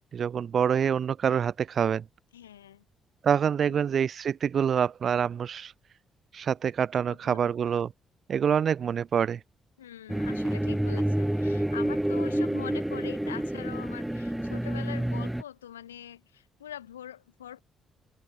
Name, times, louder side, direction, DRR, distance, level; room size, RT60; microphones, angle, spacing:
voice 1, 0.0-2.0 3.2-5.7 6.3-7.9 8.3-9.4, right 8 dB, 50° right, 1.0 m, -26 dB
voice 2, 2.3-2.8 3.6-3.9 7.1-7.5 9.8-17.6, left 11 dB, 90° left, 3.8 m, -43 dB
sound 1, 10.1-15.4, right 1 dB, 5° right, 0.7 m, -28 dB
open air
hypercardioid pair, 45°, 0 cm